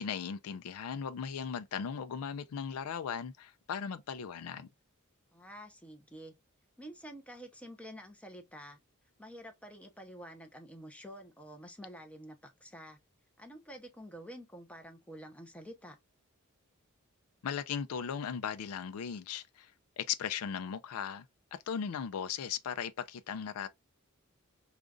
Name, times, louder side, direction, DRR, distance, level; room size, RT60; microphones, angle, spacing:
voice 1, 0.0-4.7 17.4-19.7 20.0-21.2 21.7-23.7, left 7 dB, 80° left, 0.4 m, -37 dB
voice 2, 5.3-6.3 6.8-8.8 9.2-12.4 12.6-13.0 13.4-16.0, equal, 5° left, 0.8 m, -49 dB
5.0 x 2.4 x 2.4 m
head